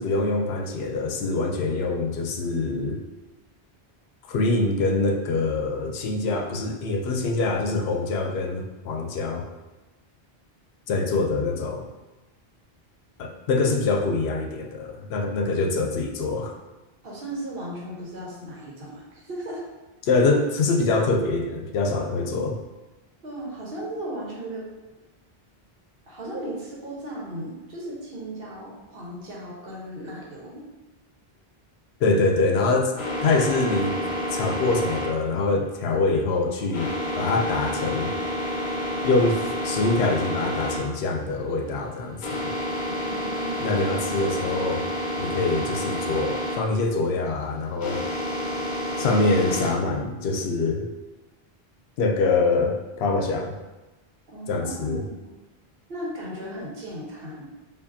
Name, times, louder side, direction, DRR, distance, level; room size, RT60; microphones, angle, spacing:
voice 1, 0.0-3.0 4.3-9.5 10.9-11.9 13.2-16.6 20.0-22.6 32.0-32.9 33.2-33.9 34.3-38.1 39.0-42.5 43.6-44.8 45.2-48.1 49.0-50.9 52.0-53.6 54.5-55.0, left 3 dB, 85° left, 3 dB, 0.8 m, -24 dB
voice 2, 17.0-19.6 23.2-24.6 26.0-30.6 42.9-44.1 54.3-55.3 55.9-57.5, right 1 dB, 65° right, -4 dB, 1.1 m, -36 dB
sound 1, 33.0-49.7, left 1 dB, 50° left, 0.8 m, -30 dB
4.8 x 2.6 x 2.6 m, 1.1 s
omnidirectional pair, 1.0 m